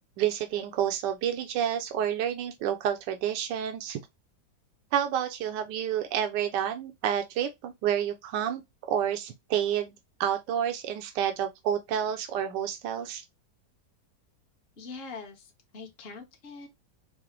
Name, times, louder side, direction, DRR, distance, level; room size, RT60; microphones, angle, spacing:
voice 1, 0.2-4.0 4.9-9.9 10.2-13.2, right 9 dB, 80° right, 1.3 m, -29 dB
voice 2, 14.8-16.7, left 4 dB, 40° left, 1.0 m, -43 dB
4.9 x 2.0 x 2.8 m
omnidirectional pair, 1.9 m